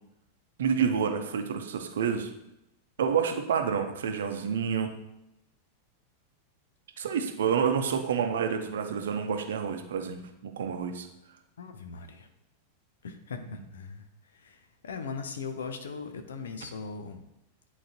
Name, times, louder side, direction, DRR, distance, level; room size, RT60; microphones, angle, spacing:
voice 1, 0.6-2.3 3.0-4.9 7.0-11.1, right 7 dB, 60° right, 5 dB, 0.7 m, -28 dB
voice 2, 11.6-12.3 13.0-17.2, left 5 dB, 65° left, 7 dB, 0.7 m, -39 dB
10.0 x 4.1 x 3.0 m, 0.87 s
figure-of-eight pair, 90°, 0 cm